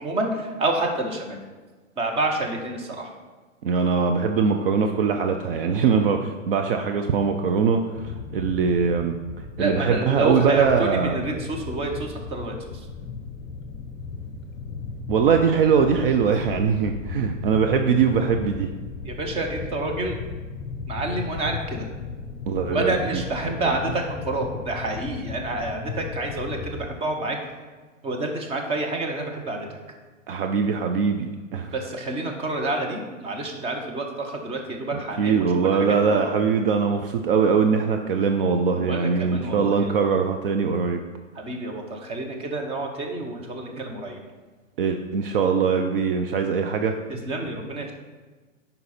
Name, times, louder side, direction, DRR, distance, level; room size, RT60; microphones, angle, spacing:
voice 1, 0.0-1.4 2.0-3.1 9.6-12.5 19.0-20.1 20.9-21.9 22.7-27.4 28.0-29.8 31.7-35.4 35.7-36.4 38.7-39.9 41.3-44.2 47.1-47.9, right 2 dB, 15° right, 3 dB, 0.9 m, -28 dB
voice 2, 3.6-9.1 9.6-11.2 15.1-18.7 22.5-23.8 30.3-31.7 34.9-41.0 44.8-47.0, right 6 dB, 45° right, 5 dB, 0.6 m, -22 dB
sound 1, 7.9-26.9, left 5 dB, 25° left, 0.9 m, -36 dB
9.5 x 5.4 x 4.3 m, 1.3 s
hypercardioid pair, 140°, 40 cm